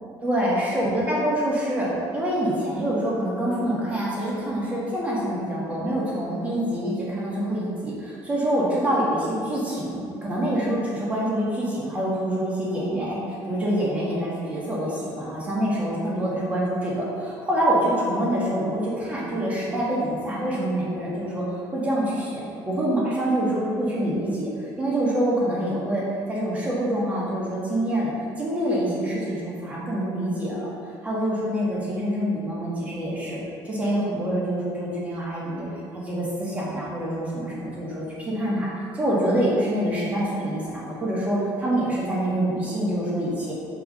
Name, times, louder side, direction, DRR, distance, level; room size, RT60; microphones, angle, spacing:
voice 1, 0.2-24.5 24.8-26.0 26.3-30.7 31.0-33.4 33.6-35.7 35.9-38.7 38.9-43.5, right 1 dB, 15° right, -6 dB, 1.9 m, -26 dB
7.4 x 4.6 x 5.2 m, 2.5 s
cardioid pair, 165°, 9 cm